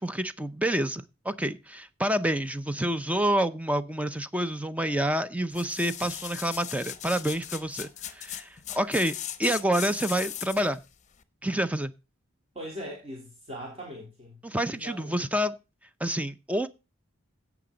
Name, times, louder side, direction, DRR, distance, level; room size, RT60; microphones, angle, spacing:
voice 1, 0.0-9.1 9.4-10.8 11.4-11.9 14.4-15.6 16.0-16.7, right 1 dB, 5° right, 0.6 m, -28 dB
sound 1, 5.5-10.8 11.2-11.3, left 11 dB, 35° left, 0.8 m, -38 dB
voice 2, 12.5-14.4 14.7-15.2, equal, 30° right, 3.8 m, -40 dB
16.5 x 6.0 x 3.9 m
head